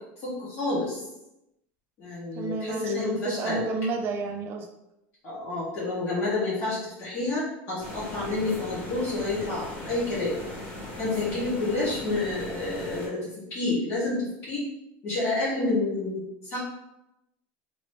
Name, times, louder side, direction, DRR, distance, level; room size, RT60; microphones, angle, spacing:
voice 1, 0.2-1.0 2.0-3.6 5.2-10.4 11.0-14.6 15.0-16.6, left 2 dB, 40° left, -8 dB, 1.3 m, -29 dB
voice 2, 2.3-4.7, right 3 dB, 40° right, 5 dB, 0.4 m, -31 dB
sound 1, 7.8-13.1, left 1 dB, 25° left, 1.3 m, -39 dB
3.0 x 2.8 x 3.2 m, 0.87 s
cardioid pair, 155°, 6 cm